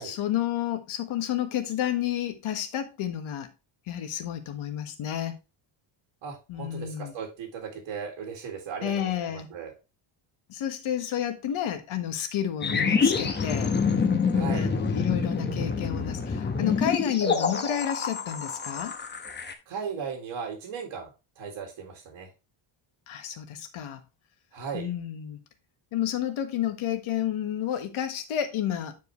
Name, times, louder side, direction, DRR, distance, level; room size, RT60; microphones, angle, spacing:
voice 1, 0.0-3.5 3.9-5.4 6.5-7.1 8.8-9.5 10.5-13.7 14.5-19.0 23.1-24.0 24.7-25.4 25.9-29.0, left 10 dB, 85° left, 1.5 m, -30 dB
voice 2, 6.2-8.9 9.2-9.7 14.3-14.7 19.7-22.3 24.5-24.9, right 6 dB, 75° right, 2.3 m, -37 dB
sound 1, 12.6-19.5, left 5 dB, 20° left, 1.0 m, -27 dB
9.2 x 4.9 x 3.1 m
cardioid pair, 165°, 48 cm